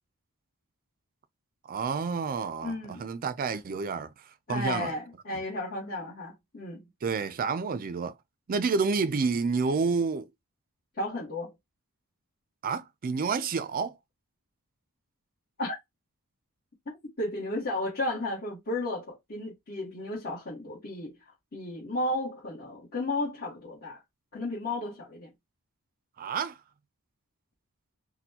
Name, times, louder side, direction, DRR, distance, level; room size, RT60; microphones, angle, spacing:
voice 1, 1.7-4.1 4.5-4.9 7.0-8.1 8.5-10.3 12.6-13.9 26.2-26.6, right 4 dB, 40° right, 0.4 m, -29 dB
voice 2, 2.6-3.0 4.5-6.8 11.0-11.5 15.6-15.8 17.2-21.1 21.5-24.0 24.3-25.3, left 2 dB, 45° left, 1.3 m, -33 dB
4.2 x 2.1 x 2.8 m
head